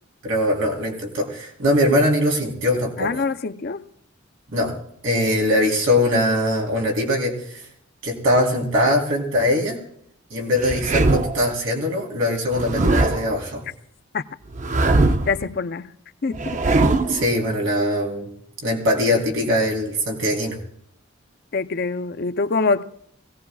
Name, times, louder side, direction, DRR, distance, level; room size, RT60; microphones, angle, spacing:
voice 1, 0.2-3.2 4.5-4.7 5.0-7.4 8.0-9.8 10.3-13.6 17.1-18.3 18.6-20.6, left 1 dB, 80° right, 3.5 m, -21 dB
voice 2, 3.0-3.8 14.1-14.2 15.1-15.9 16.2-16.4 21.5-22.8, left 4 dB, 50° left, 0.5 m, -24 dB
sound 1, 10.6-11.5 12.5-13.3 14.5-15.4 16.3-17.2, right 2 dB, 35° right, 0.6 m, -20 dB
23.5 x 17.5 x 2.3 m
head